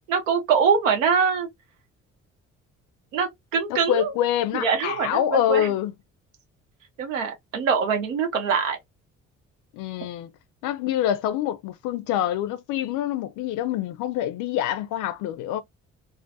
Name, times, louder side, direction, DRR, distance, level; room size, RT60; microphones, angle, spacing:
voice 1, 0.1-1.5 3.1-4.1 4.5-5.7 7.0-8.8, right 6 dB, 75° right, 0.8 m, -23 dB
voice 2, 3.7-5.9 9.7-10.3 10.6-15.6, left 11 dB, 50° left, 0.5 m, -26 dB
2.4 x 2.0 x 2.6 m
figure-of-eight pair, 45°, 39 cm